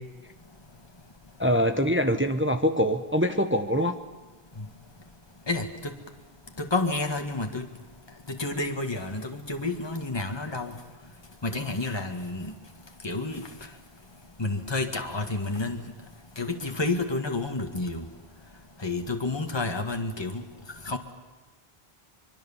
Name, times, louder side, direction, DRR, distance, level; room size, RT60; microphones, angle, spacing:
voice 1, 1.4-4.0, equal, 10° right, 7 dB, 1.0 m, -24 dB
voice 2, 5.5-5.9 6.6-7.7 8.3-10.7 11.4-12.5 13.0-13.4 14.4-15.8 16.4-18.1 18.8-20.4 20.9-21.0, left 2 dB, 25° left, 4 dB, 1.8 m, -30 dB
24.5 x 23.5 x 7.2 m, 1.3 s
omnidirectional pair, 1.0 m